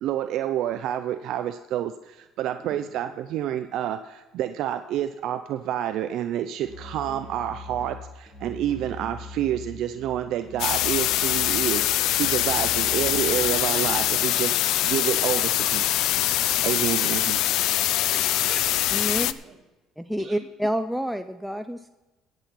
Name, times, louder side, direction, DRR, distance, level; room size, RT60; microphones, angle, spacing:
voice 1, 0.0-15.9 16.6-17.4, right 11 dB, 65° right, 9 dB, 0.6 m, -28 dB
voice 2, 2.6-3.1 18.1-19.6 20.2-20.4, right 4 dB, 40° right, 1 dB, 2.7 m, -44 dB
Musical instrument, 6.6-14.2, left 4 dB, 15° left, 2.5 m, -42 dB
sound 1, 10.6-19.3, left 14 dB, 70° left, 0.4 m, -23 dB
voice 3, 18.9-19.3 20.0-21.9, equal, ahead, 8 dB, 0.5 m, -28 dB
17.0 x 8.1 x 4.3 m, 1.1 s
cardioid pair, 120°, 0 cm